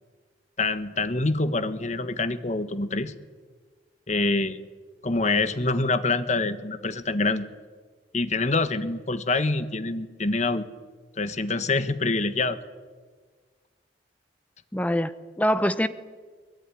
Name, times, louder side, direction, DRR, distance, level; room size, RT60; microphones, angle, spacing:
voice 1, 0.6-3.1 4.1-4.6 5.0-7.5 8.1-10.6 11.2-12.6, left 3 dB, 40° left, 11 dB, 1.4 m, -25 dB
voice 2, 14.7-15.9, equal, 10° left, 12 dB, 0.8 m, -24 dB
22.5 x 22.5 x 10.0 m, 1.5 s
head